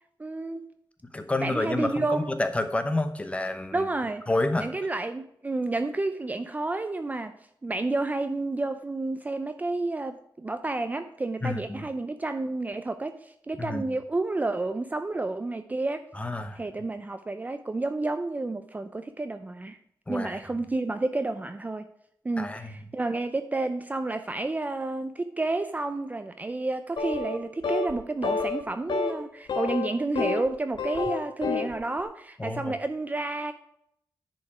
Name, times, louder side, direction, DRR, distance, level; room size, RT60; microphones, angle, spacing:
voice 1, 0.2-0.6 1.4-2.3 3.7-4.2 4.6-7.3 7.6-16.0 16.6-19.8 20.1-21.9 22.2-33.5, right 2 dB, 20° right, 9 dB, 0.5 m, -30 dB
voice 2, 1.1-3.8 4.3-4.7 11.4-11.8 13.6-13.8 16.1-16.6 20.1-20.4 22.4-22.7 32.4-32.7, left 2 dB, 15° left, 8 dB, 0.9 m, -29 dB
sound 1, 27.0-27.4 27.6-27.9 28.2-28.6 28.9-29.1 29.5-30.5 30.7-31.7, left 4 dB, 80° left, 1.3 m, -29 dB
10.5 x 5.2 x 4.7 m, 0.71 s
wide cardioid pair, 145°, 8 cm